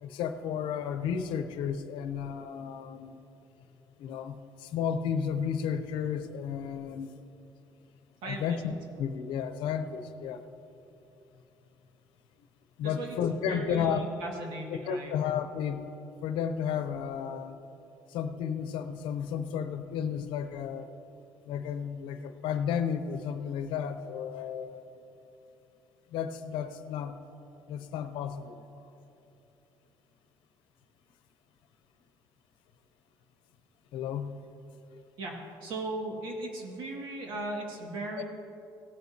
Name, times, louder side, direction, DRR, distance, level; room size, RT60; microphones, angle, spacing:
voice 1, 0.0-3.2 4.0-7.1 8.2-10.4 12.8-14.0 14.9-15.8 16.2-17.6 18.1-20.9 21.5-25.0 26.1-27.2 27.7-28.6 33.9-34.4 38.2-38.3, left 7 dB, 85° left, 9 dB, 0.7 m, -33 dB
voice 2, 8.2-8.6 12.8-15.1 35.2-35.4 35.6-38.2, right 2 dB, 80° right, 0 dB, 2.0 m, -37 dB
17.0 x 9.4 x 2.8 m, 2.9 s
cardioid pair, 165°, 8 cm